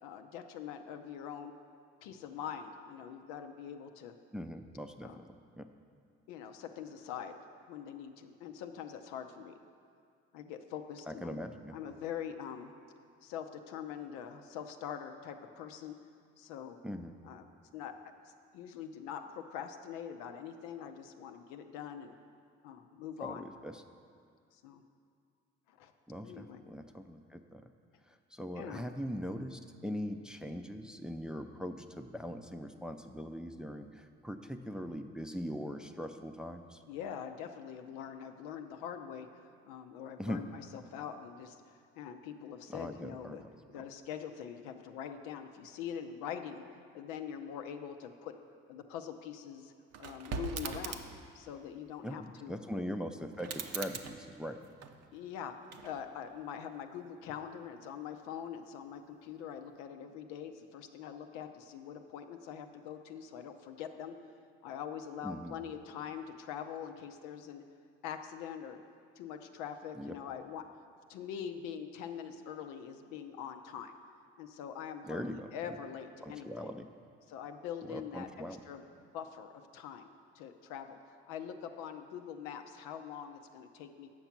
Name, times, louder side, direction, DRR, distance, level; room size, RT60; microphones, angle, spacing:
voice 1, 0.0-1.5 2.0-4.2 5.0-5.2 6.3-7.4 7.7-9.5 10.3-11.4 11.7-12.7 13.2-16.0 16.4-16.8 17.2-17.4 17.7-17.9 18.5-22.2 22.6-23.5 24.5-24.8 25.7-25.9 26.2-26.6 28.6-28.9 36.9-39.3 39.6-41.6 42.0-43.4 43.7-46.6 46.9-48.3 48.7-49.7 50.0-51.0 51.3-52.5 55.1-55.6 55.8-64.2 64.6-67.6 68.0-68.8 69.2-70.6 71.1-73.9 74.4-76.7 77.3-78.3 78.7-81.0 81.3-84.1, left 8 dB, 85° left, 6 dB, 0.6 m, -43 dB
voice 2, 4.3-5.7 11.1-11.8 16.8-17.2 23.2-23.8 26.1-27.7 28.1-36.8 40.2-40.4 42.7-43.5 43.7-43.8 52.0-54.6 65.2-65.6 69.9-70.2 75.1-75.5 76.2-76.9 77.9-78.6, equal, ahead, 6 dB, 0.5 m, -41 dB
sound 1, 49.9-51.3 53.3-55.2 55.6-56.3, right 6 dB, 55° right, 0.7 m, -42 dB
7.9 x 6.0 x 5.8 m, 2.2 s
hypercardioid pair, 60°, 30 cm